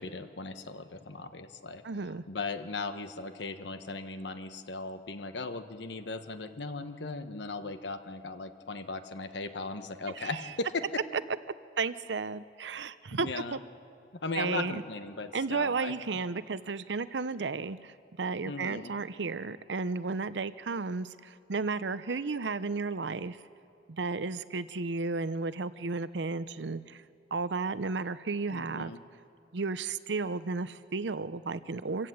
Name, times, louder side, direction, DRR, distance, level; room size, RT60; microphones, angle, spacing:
voice 1, 0.0-1.8 2.3-11.0 13.1-13.6 14.2-15.9 18.4-18.9 28.5-29.0, left 3 dB, 80° left, 9 dB, 1.2 m, -38 dB
voice 2, 1.8-2.2 10.2-10.3 11.8-13.6 14.3-14.8 15.3-17.9 18.2-23.4 23.9-27.0 27.3-28.9 29.5-32.1, right 4 dB, 80° right, 15 dB, 0.7 m, -33 dB
26.0 x 16.5 x 8.0 m, 2.5 s
head